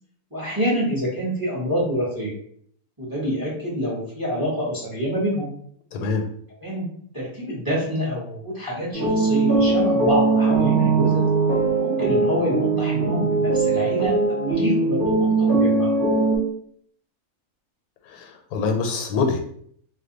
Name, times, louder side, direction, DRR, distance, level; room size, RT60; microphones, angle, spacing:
voice 1, 0.3-2.3 3.0-5.5 6.6-6.9 7.1-11.2 11.8-15.9, equal, 20° right, -6 dB, 0.8 m, -26 dB
voice 2, 5.9-6.2 18.1-19.4, left 4 dB, 90° left, 3 dB, 1.1 m, -25 dB
sound 1, 8.9-16.4, right 3 dB, 15° left, 0.6 m, -20 dB
2.5 x 2.2 x 3.8 m, 0.63 s
omnidirectional pair, 1.5 m